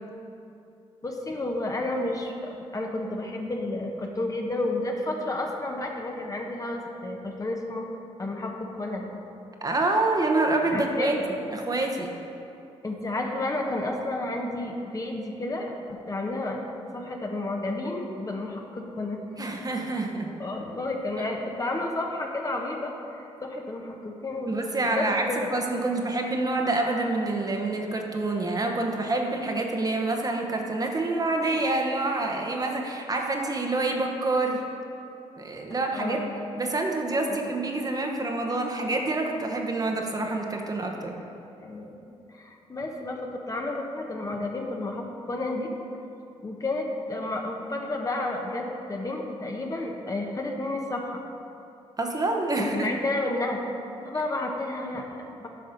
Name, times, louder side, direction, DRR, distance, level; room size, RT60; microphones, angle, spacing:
voice 1, 1.0-7.9 8.2-9.2 10.7-11.1 12.8-16.6 16.9-19.2 20.4-25.5 35.9-36.4 37.4-37.5 41.6-41.9 42.3-45.7 46.4-51.2 52.6-53.6 54.0-55.5, left 2 dB, 30° left, 1 dB, 1.1 m, -31 dB
voice 2, 9.6-11.2 11.5-12.1 19.4-20.3 24.5-25.3 25.5-34.6 35.4-36.2 36.6-41.1 52.0-52.9, right 2 dB, 30° right, 2 dB, 1.0 m, -27 dB
8.6 x 5.4 x 5.2 m, 2.7 s
cardioid pair, 65°, 12 cm